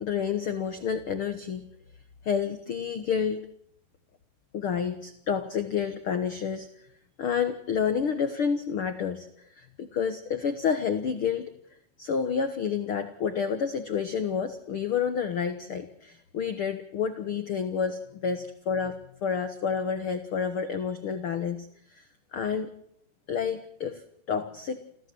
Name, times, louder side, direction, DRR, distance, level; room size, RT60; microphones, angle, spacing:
voice 1, 0.0-1.6 2.2-3.4 4.5-6.7 7.2-9.3 9.6-11.5 12.0-19.0 19.2-21.7 21.9-22.0 22.3-22.7 23.3-24.0 24.3-24.8, left 7 dB, 60° left, 9 dB, 1.4 m, -29 dB
29.0 x 15.0 x 7.7 m, 0.71 s
omnidirectional pair, 4.2 m